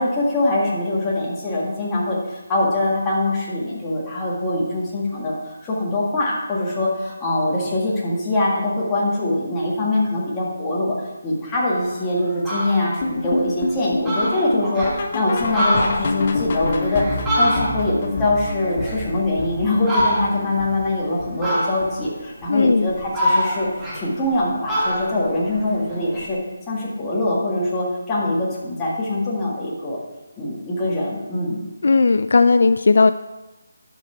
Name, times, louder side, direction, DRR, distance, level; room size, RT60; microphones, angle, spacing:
voice 1, 0.0-23.7 23.9-26.4 26.7-30.0 30.4-31.6, left 2 dB, 10° left, -6 dB, 1.8 m, -23 dB
Fowl, 11.8-11.9 12.3-12.9 13.4-13.5 13.7-13.8 14.0-14.9 15.4-18.0 18.4-19.4 19.8-20.5 21.4-22.1 22.6-24.4 24.7-26.3, equal, 10° right, 1.6 m, -24 dB
sound 1, 13.0-22.1 22.4-22.7 23.0-23.1 23.6-23.7 24.2-24.3, left 2 dB, 35° left, 0.9 m, -28 dB
voice 2, 22.5-22.9 31.8-33.1, left 4 dB, 65° left, 12 dB, 0.3 m, -16 dB
11.5 x 5.9 x 4.5 m, 1.1 s
figure-of-eight pair, 170°, 0 cm